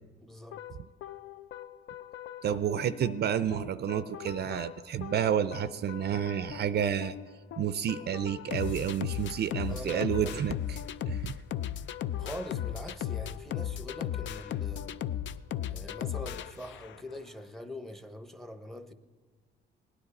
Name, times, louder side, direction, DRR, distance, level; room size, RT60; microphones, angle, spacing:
voice 1, 0.2-0.6 9.7-10.4 12.2-15.0 15.7-18.9, equal, ahead, 0.8 m, -43 dB
sound 1, 0.5-17.2, left 10 dB, 70° left, 0.4 m, -37 dB
voice 2, 2.4-7.1 7.6-10.8 11.1-11.4, right 9 dB, 55° right, 0.4 m, -30 dB
17.5 x 9.9 x 4.1 m
cardioid pair, 90°, 20 cm